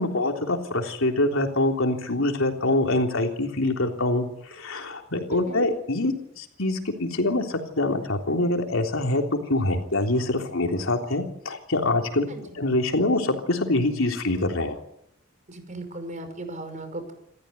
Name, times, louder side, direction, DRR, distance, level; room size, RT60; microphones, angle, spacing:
voice 1, 0.0-12.3 12.5-14.8, left 2 dB, 85° left, 2 dB, 3.5 m, -25 dB
voice 2, 5.3-5.6 12.3-12.4 15.5-17.1, right 2 dB, 40° right, 7 dB, 5.5 m, -36 dB
29.0 x 14.0 x 9.6 m, 0.77 s
head